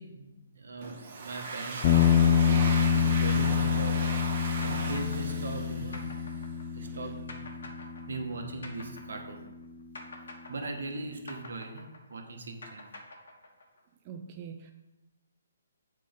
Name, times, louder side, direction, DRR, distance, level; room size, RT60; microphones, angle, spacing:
voice 1, 0.0-4.0 4.6-6.2 6.5-7.7 8.1-9.5 10.5-12.9, right 3 dB, 75° right, 3 dB, 1.2 m, -40 dB
Domestic sounds home sounds, 0.8-6.4, right 3 dB, 45° right, 1.2 m, -38 dB
sound 1, 1.8-10.2, left 7 dB, 30° left, 0.5 m, -27 dB
sound 2, 3.3-9.6 9.9-13.8, left 2 dB, 75° left, 1.2 m, -47 dB
voice 2, 14.1-14.7, right 6 dB, 30° right, 4 dB, 0.4 m, -44 dB
7.6 x 3.3 x 5.1 m, 1.0 s
hypercardioid pair, 160°, 0 cm